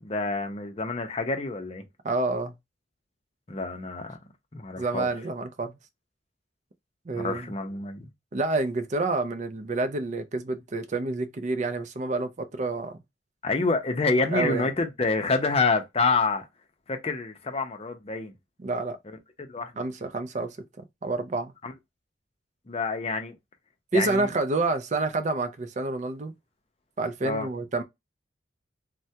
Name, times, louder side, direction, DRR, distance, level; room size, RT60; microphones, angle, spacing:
voice 1, 0.0-1.8 3.5-4.2 4.5-5.1 7.1-8.1 13.4-16.5 16.9-18.3 19.0-19.8 21.6-21.7 22.7-23.4 23.9-24.3 27.2-27.5, left 3 dB, 35° left, 0.6 m, -28 dB
voice 2, 2.0-2.5 4.8-5.8 7.1-7.5 8.3-13.0 14.3-14.7 18.6-19.0 19.8-20.6 21.0-21.5 23.9-26.3 27.0-27.8, right 3 dB, 40° right, 0.4 m, -28 dB
3.3 x 2.2 x 2.7 m
head